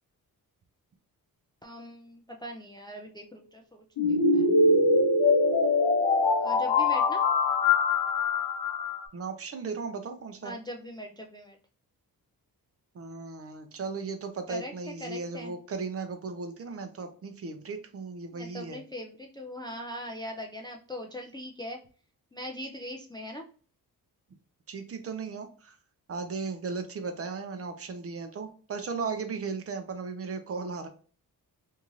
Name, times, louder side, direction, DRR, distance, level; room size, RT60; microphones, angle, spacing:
voice 1, 1.6-3.8 4.1-4.5 6.4-7.2 10.4-11.6 14.5-14.7 15.0-15.5 18.3-21.8 22.3-23.5, left 1 dB, 15° left, 1 dB, 0.3 m, -40 dB
sound 1, 4.0-9.0, left 3 dB, 75° left, 0.7 m, -23 dB
voice 2, 9.1-10.5 12.9-18.8 24.7-25.8 26.1-30.9, right 4 dB, 40° right, 7 dB, 0.5 m, -36 dB
2.7 x 2.4 x 3.0 m, 0.41 s
cardioid pair, 100°, 37 cm